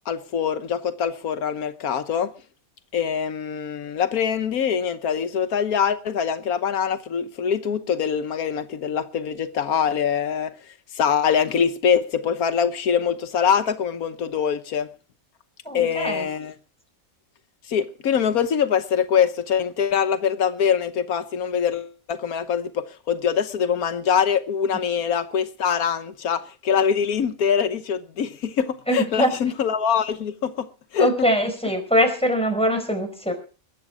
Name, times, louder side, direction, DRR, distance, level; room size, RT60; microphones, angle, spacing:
voice 1, 0.1-2.3 2.9-10.5 10.9-14.9 15.7-16.5 17.7-30.7 30.9-31.1, left 7 dB, 90° left, 1.5 m, -23 dB
voice 2, 15.6-16.2 28.9-29.3 31.0-33.3, equal, 5° left, 4.7 m, -22 dB
22.0 x 8.2 x 6.1 m
omnidirectional pair, 1.5 m